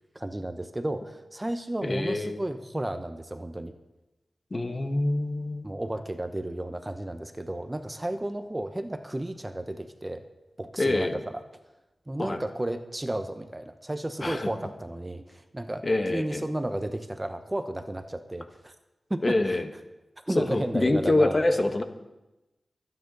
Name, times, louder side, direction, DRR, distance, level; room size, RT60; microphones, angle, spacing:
voice 1, 0.1-3.7 5.6-10.2 10.6-11.5 12.1-18.7 19.1-19.8 20.3-21.8, right 1 dB, 20° right, 8 dB, 1.0 m, -33 dB
voice 2, 1.8-2.4 4.5-5.6 10.8-11.2 12.2-12.4 14.2-14.5 15.8-16.4 19.2-19.7 20.3-21.8, left 2 dB, 45° left, 6 dB, 1.6 m, -25 dB
23.5 x 9.4 x 4.1 m, 1.0 s
cardioid pair, 50°, 0 cm